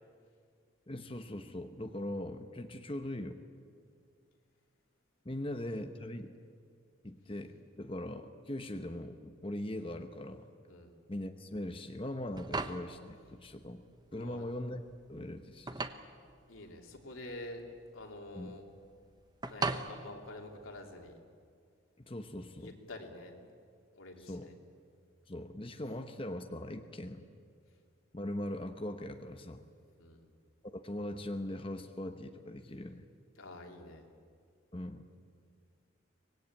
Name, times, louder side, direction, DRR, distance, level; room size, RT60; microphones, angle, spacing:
voice 1, 0.9-3.4 5.2-6.3 7.0-10.5 11.1-13.8 14.1-14.8 15.1-15.9 18.4-18.6 22.0-22.8 24.3-24.5 25.3-27.3 28.1-29.7 30.6-33.1 34.7-35.0, left 1 dB, 25° left, 6 dB, 0.9 m, -40 dB
sound 1, 12.1-21.1, right 3 dB, 20° right, 0.9 m, -41 dB
voice 2, 14.1-14.5 16.5-17.6 17.9-18.6 19.5-21.2 22.5-23.5 23.9-24.6 30.0-30.3 33.4-34.1, left 2 dB, 90° left, 2 dB, 3.1 m, -48 dB
24.5 x 19.5 x 8.9 m, 2.2 s
head